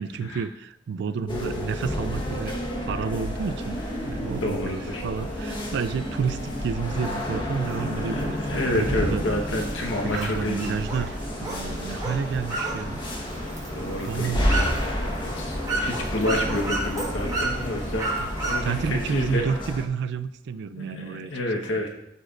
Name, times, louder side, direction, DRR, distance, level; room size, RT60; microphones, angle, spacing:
voice 1, 0.0-9.2 10.0-13.0 13.8-14.5 18.2-18.3 18.6-21.3 21.6-21.7, right 6 dB, 65° right, 13 dB, 0.3 m, -30 dB
sound 1, 1.3-19.9, left 1 dB, 25° left, 1.2 m, -30 dB
sound 2, 3.5-19.4, right 2 dB, 40° right, 0.9 m, -47 dB
voice 2, 4.4-5.0 6.2-6.3 7.8-10.8 13.7-14.7 15.2-19.5 20.7-21.9, left 1 dB, 80° left, 1 dB, 1.2 m, -29 dB
sound 3, 10.1-19.0, right 3 dB, 20° right, 1.7 m, -33 dB
12.5 x 4.3 x 2.5 m, 0.83 s
head